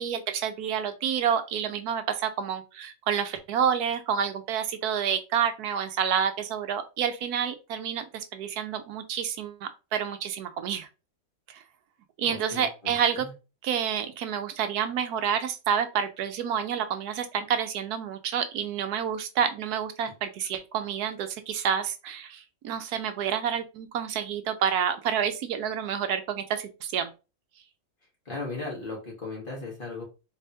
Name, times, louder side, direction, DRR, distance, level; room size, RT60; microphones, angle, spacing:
voice 1, 0.0-10.9 11.5-11.6 12.2-13.3 13.6-27.1, right 8 dB, 80° right, 9 dB, 1.1 m, -29 dB
voice 2, 12.3-13.3 28.3-30.0, left 3 dB, 35° left, -2 dB, 1.7 m, -37 dB
4.1 x 3.4 x 2.7 m, 0.29 s
omnidirectional pair, 1.7 m